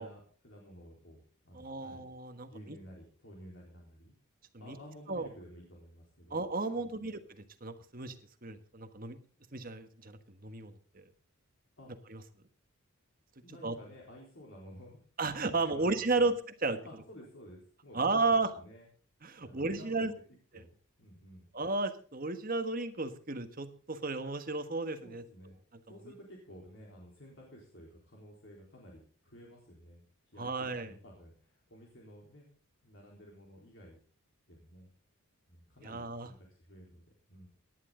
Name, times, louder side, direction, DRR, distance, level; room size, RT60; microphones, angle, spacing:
voice 1, 0.0-2.0 2.5-4.1 4.6-6.4 6.7-7.1 11.8-11.9 13.4-15.0 15.5-16.3 16.8-18.9 19.4-20.1 20.5-21.5 25.0-25.6 25.9-32.5 32.8-34.0 34.5-34.9 35.5-37.5, equal, 55° left, -2 dB, 4.0 m, -53 dB
voice 2, 1.5-2.8 4.5-4.8 5.1-5.3 6.3-8.1 8.4-9.2 9.5-11.0 12.1-12.2 13.6-13.7 15.2-16.8 17.9-18.5 19.2-20.1 20.5-20.6 21.5-25.2 30.4-30.9 35.8-36.3, right 3 dB, 40° right, 8 dB, 1.4 m, -33 dB
18.5 x 11.0 x 3.9 m, 0.43 s
head